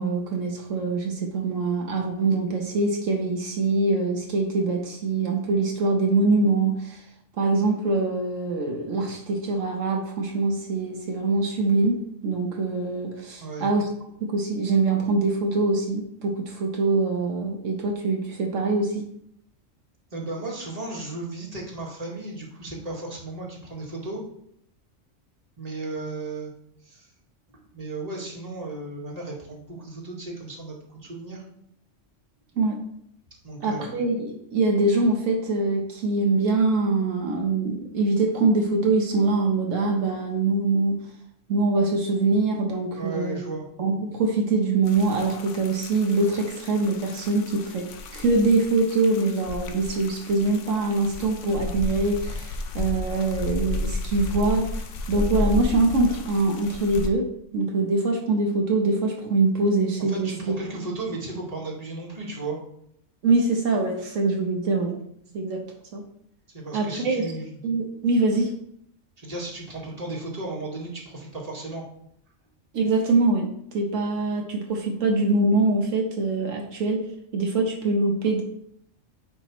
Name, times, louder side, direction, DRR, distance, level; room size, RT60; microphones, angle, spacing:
voice 1, 0.0-7.0 7.4-13.8 14.2-19.1 32.6-32.8 33.6-41.0 41.5-43.4 43.8-54.7 55.1-57.3 57.5-60.3 63.2-65.0 65.3-65.6 65.9-66.0 66.7-67.2 67.6-68.5 72.7-77.1 77.3-78.4, right 3 dB, 80° right, 1 dB, 1.3 m, -24 dB
voice 2, 20.1-24.2 25.6-26.5 26.8-27.1 27.7-31.4 33.4-33.9 43.0-43.6 60.1-62.6 66.5-67.5 69.2-71.8, right 2 dB, 30° right, -2 dB, 1.8 m, -35 dB
sound 1, 44.8-57.1, left 3 dB, 75° left, 1.0 m, -33 dB
8.9 x 5.2 x 3.1 m, 0.71 s
omnidirectional pair, 1.3 m